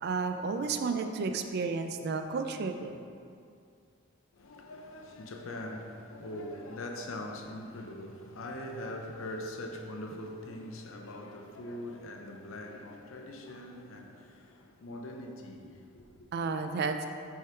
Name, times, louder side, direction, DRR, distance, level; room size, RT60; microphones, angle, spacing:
voice 1, 0.0-3.0 16.3-17.0, right 4 dB, 50° right, 0.3 m, -32 dB
voice 2, 4.3-16.3, left 1 dB, 70° left, 0.6 m, -42 dB
6.2 x 3.7 x 4.4 m
head